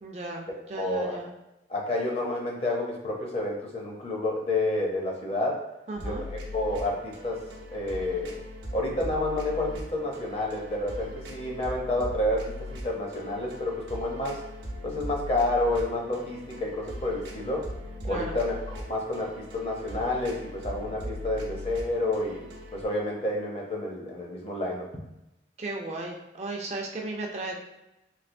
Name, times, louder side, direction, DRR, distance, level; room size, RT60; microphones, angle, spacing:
voice 1, 0.0-1.3 5.9-6.2 18.1-18.4 25.6-27.6, right 2 dB, 35° right, 0 dB, 0.4 m, -35 dB
voice 2, 0.7-1.1 1.7-5.6 6.0-7.4 7.7-8.4 8.7-14.4 14.8-17.7 18.1-22.4 22.7-24.9, left 1 dB, 35° left, -1 dB, 0.6 m, -29 dB
sound 1, 6.0-22.9, left 1 dB, 85° right, 0.7 m, -40 dB
3.2 x 3.0 x 2.5 m, 0.91 s
head